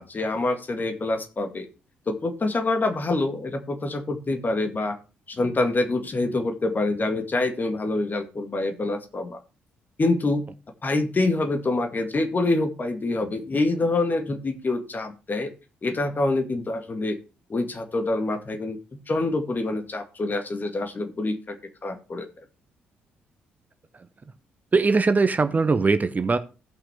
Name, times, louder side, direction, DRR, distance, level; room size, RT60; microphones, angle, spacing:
voice 1, 0.0-1.7 2.1-5.0 5.3-9.4 10.0-10.4 10.8-15.5 15.8-17.2 17.5-21.6 21.8-22.3, left 2 dB, 35° left, 1.9 m, -26 dB
voice 2, 24.7-26.4, right 4 dB, 30° right, 0.8 m, -20 dB
16.0 x 5.9 x 3.4 m
figure-of-eight pair, 45°, 6 cm